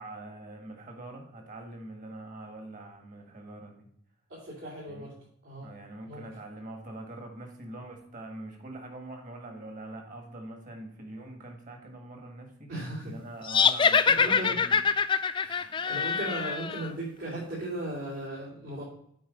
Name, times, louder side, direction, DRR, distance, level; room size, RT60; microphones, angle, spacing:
voice 1, 0.0-3.9 4.9-5.1 5.6-12.7 13.0-14.8, right 2 dB, 40° right, 3 dB, 1.7 m, -44 dB
voice 2, 4.3-5.1 5.4-5.7 6.0-6.3 12.7-13.2 14.0-14.6 15.3-18.8, right 1 dB, 70° right, -9 dB, 3.3 m, -37 dB
sound 1, 13.5-16.9, left 6 dB, 25° left, 0.3 m, -24 dB
8.6 x 4.6 x 5.2 m, 0.69 s
head